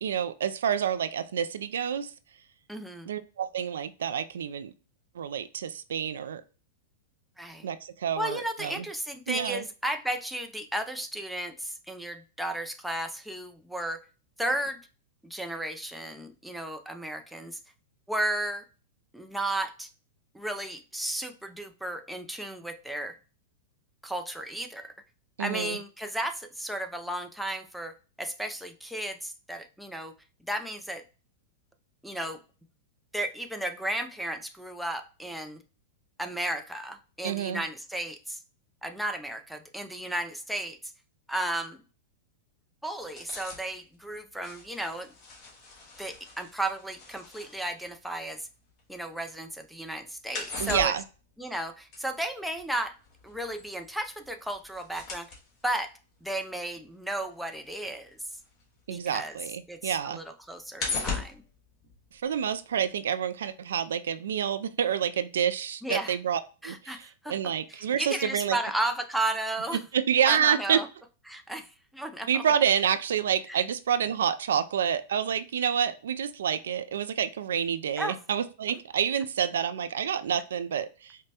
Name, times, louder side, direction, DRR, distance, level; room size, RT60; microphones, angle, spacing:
voice 1, 0.0-2.1 3.1-4.7 5.1-6.4 7.6-8.8 9.3-9.7 25.4-25.8 37.2-37.6 50.6-51.0 58.9-60.2 62.1-68.6 69.9-70.8 72.3-81.2, right 8 dB, 85° right, 11 dB, 0.3 m, -28 dB
voice 2, 2.7-3.1 7.4-7.7 8.2-14.0 14.4-14.8 15.2-17.6 18.1-18.6 19.1-19.9 20.3-23.2 24.0-24.9 25.4-30.1 30.5-31.0 32.0-32.4 33.1-35.6 36.2-38.4 38.8-40.9 41.3-41.8 42.8-45.1 46.0-48.5 48.9-50.9 51.4-53.0 53.2-55.3 55.6-58.2 58.9-59.4 59.7-61.4 65.8-66.2 66.6-67.3 67.7-69.8 70.3-70.9 71.3-72.4 73.5-73.6 78.0-78.2, right 1 dB, ahead, 5 dB, 0.5 m, -34 dB
sound 1, 43.0-49.1 49.4-59.1 59.5-62.5 62.8-62.9, left 4 dB, 35° left, 1.6 m, -40 dB
5.1 x 2.1 x 2.8 m, 0.34 s
hypercardioid pair, 125°, 0 cm